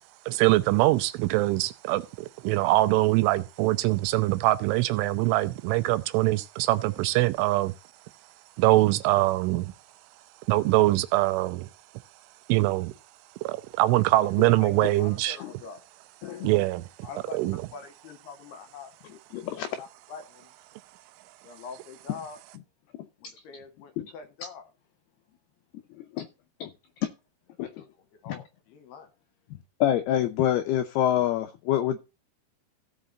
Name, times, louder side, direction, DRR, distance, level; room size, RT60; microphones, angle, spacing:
voice 1, 0.3-7.7 8.6-9.7 10.5-11.7 12.5-12.9 13.4-15.3 16.4-16.8 17.3-17.6, right 18 dB, 80° right, 3.1 m, -23 dB
voice 2, 14.4-15.8 16.2-16.6 17.0-17.4 17.7-18.9 19.5-20.5 21.4-22.4 23.2-24.7 27.6-27.9 28.2-29.1, left 6 dB, 75° left, 2.6 m, -42 dB
voice 3, 19.3-19.7 24.0-24.1 26.0-26.3 26.6-26.7 27.0-27.1 27.6-27.7 28.3-28.4 29.8-32.0, left 11 dB, 90° left, 2.2 m, -26 dB
16.5 x 5.7 x 3.8 m
omnidirectional pair, 5.6 m